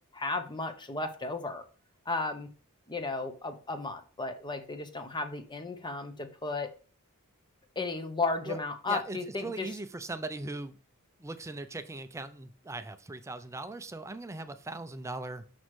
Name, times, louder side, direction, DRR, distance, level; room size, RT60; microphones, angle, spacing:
voice 1, 0.1-1.6 2.1-2.5 2.9-6.7 7.8-9.7, left 3 dB, 20° left, 8 dB, 0.8 m, -34 dB
voice 2, 8.9-10.7 11.2-15.4, right 2 dB, 15° right, 11 dB, 0.4 m, -39 dB
6.2 x 6.1 x 3.1 m, 0.40 s
head